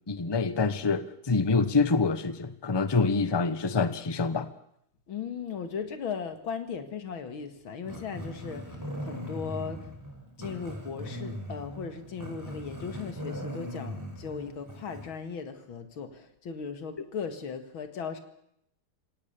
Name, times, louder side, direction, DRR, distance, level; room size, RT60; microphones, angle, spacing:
voice 1, 0.1-4.5, left 4 dB, 25° left, 13 dB, 0.6 m, -26 dB
voice 2, 5.1-9.9 10.4-18.2, left 6 dB, 70° left, 9 dB, 2.7 m, -37 dB
Growling, 7.8-15.2, equal, 10° right, 4.9 m, -39 dB
27.0 x 17.5 x 7.0 m, 0.76 s
omnidirectional pair, 2.3 m